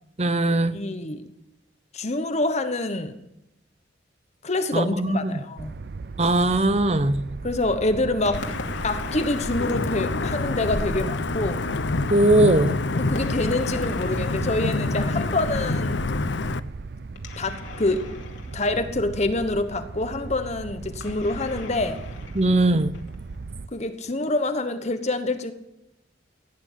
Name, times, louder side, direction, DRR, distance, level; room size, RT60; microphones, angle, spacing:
voice 1, 0.2-0.8 4.7-5.4 6.2-7.2 12.1-12.8 22.3-22.9, right 1 dB, 35° right, 13 dB, 0.9 m, -20 dB
voice 2, 0.7-1.3 1.9-3.2 4.4-5.8 7.4-8.5 8.8-11.7 12.9-16.0 17.4-18.0 18.5-22.0 23.7-25.5, left 2 dB, 35° left, 9 dB, 1.2 m, -26 dB
sound 1, 5.6-23.7, right 3 dB, 55° right, 0.6 m, -37 dB
sound 2, 8.2-10.9 13.1-15.5 17.2-19.6 21.0-23.4, left 2 dB, 80° left, 2.7 m, -41 dB
Wind / Thunder / Rain, 8.3-16.6, left 3 dB, 65° left, 0.7 m, -27 dB
17.5 x 9.7 x 8.2 m, 0.86 s
head